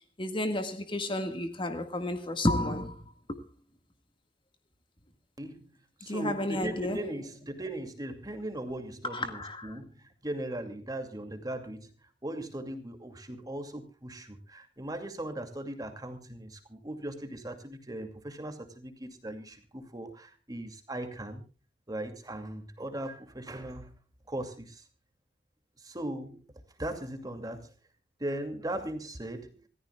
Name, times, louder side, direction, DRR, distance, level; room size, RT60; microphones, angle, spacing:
voice 1, 0.2-3.1 6.0-7.0 9.0-9.8, left 1 dB, 30° left, 1.7 m, -31 dB
voice 2, 5.4-5.7 6.0-11.9 12.2-21.4 21.9-24.0 24.3-24.8 25.8-26.4 26.8-27.7 28.2-29.6, right 1 dB, 20° right, 2.5 m, -38 dB
27.0 x 15.0 x 2.3 m
head